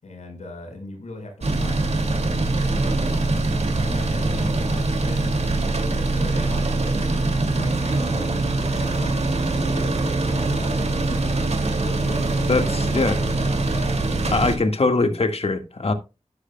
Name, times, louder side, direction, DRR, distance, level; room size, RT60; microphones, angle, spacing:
voice 1, 0.0-3.3 3.8-5.4 5.9-8.3 8.6-14.6, left 2 dB, 90° left, 4.8 m, -39 dB
sound 1, 1.4-14.6, right 2 dB, 70° right, 2.6 m, -23 dB
voice 2, 12.5-13.2 14.3-15.9, left 3 dB, 60° left, 1.8 m, -22 dB
12.0 x 9.8 x 2.3 m
cardioid pair, 40°, 12 cm